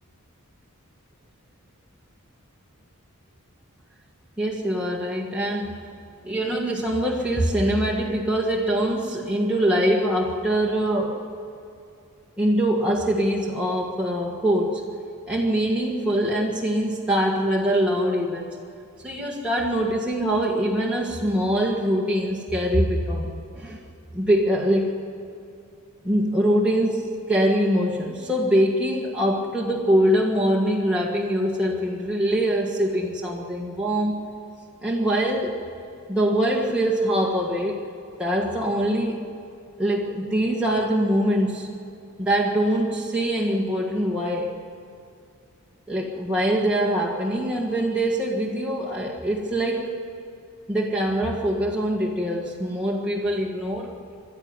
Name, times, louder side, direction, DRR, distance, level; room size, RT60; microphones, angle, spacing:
voice 1, 4.4-5.8 6.2-11.2 12.4-14.8 15.3-18.6 19.0-23.8 24.1-24.9 26.0-34.2 34.8-35.6 36.1-37.8 38.2-39.2 39.8-41.7 42.2-44.5 45.9-50.0 50.7-54.2, right 1 dB, 5° right, -4 dB, 1.7 m, -23 dB
25.0 x 12.5 x 9.7 m, 2.5 s
head